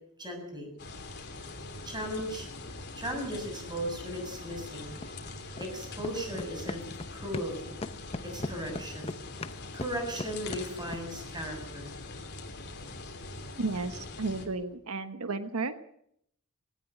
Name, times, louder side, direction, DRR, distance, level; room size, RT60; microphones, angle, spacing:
voice 1, 0.2-0.7 1.8-2.5 2.9-5.0 5.6-6.8 7.1-7.7 8.3-9.1 9.7-11.9, equal, 20° right, 4 dB, 6.7 m, -36 dB
sound 1, 0.8-14.5, left 3 dB, 50° left, 3.5 m, -43 dB
sound 2, 2.2-2.3 3.7-3.8 5.0-5.1 5.6-5.7 6.0-7.6 7.8-11.1, left 2 dB, 30° left, 0.9 m, -39 dB
voice 2, 13.6-15.7, right 3 dB, 85° right, 10 dB, 1.2 m, -33 dB
19.5 x 18.0 x 9.1 m, 0.72 s
head